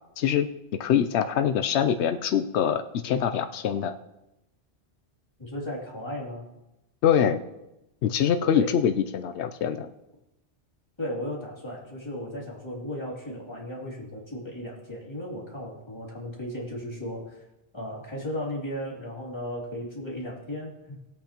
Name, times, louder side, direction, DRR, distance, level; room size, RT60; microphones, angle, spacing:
voice 1, 0.2-0.5 0.8-3.9 7.0-7.4 8.0-9.9, left 9 dB, 90° left, 8 dB, 0.9 m, -24 dB
voice 2, 5.4-6.5 8.5-8.7 11.0-17.4 17.7-21.0, left 1 dB, 25° left, -5 dB, 2.9 m, -35 dB
19.0 x 8.4 x 2.9 m, 0.93 s
omnidirectional pair, 1.1 m